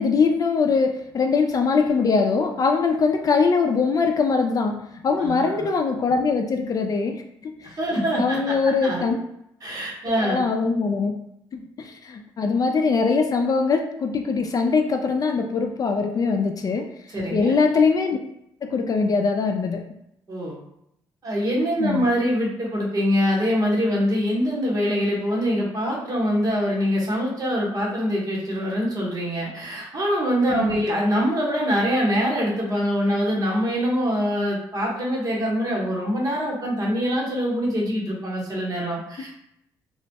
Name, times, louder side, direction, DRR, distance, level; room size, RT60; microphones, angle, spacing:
voice 1, 0.0-7.7 8.0-9.2 10.2-11.1 11.5-16.9 17.3-18.2 18.6-19.8 21.8-22.1 30.5-30.8, left 4 dB, 45° left, 4 dB, 0.4 m, -22 dB
voice 2, 5.2-5.7 7.6-9.0 9.6-10.4 17.1-17.6 20.3-20.6 21.2-39.4, equal, 45° right, -3 dB, 1.2 m, -24 dB
3.0 x 2.1 x 2.8 m, 0.79 s
supercardioid pair, 70°, 9 cm